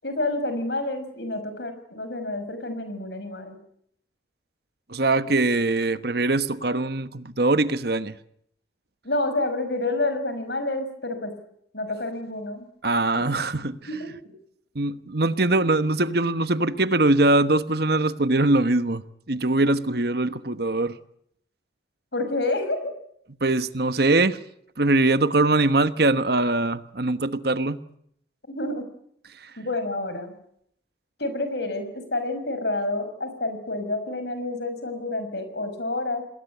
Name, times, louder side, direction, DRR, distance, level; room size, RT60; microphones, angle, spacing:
voice 1, 0.0-3.6 9.0-11.3 11.7-12.7 13.1-13.5 13.9-14.3 22.1-22.9 28.5-28.9 29.6-30.3 31.2-36.2, left 2 dB, 65° left, 5.8 m, -29 dB
voice 2, 4.9-8.1 12.8-13.8 14.7-19.0 19.3-21.0 23.4-24.4 24.8-27.8, right 2 dB, 55° right, 1.2 m, -22 dB
27.5 x 20.0 x 8.5 m
head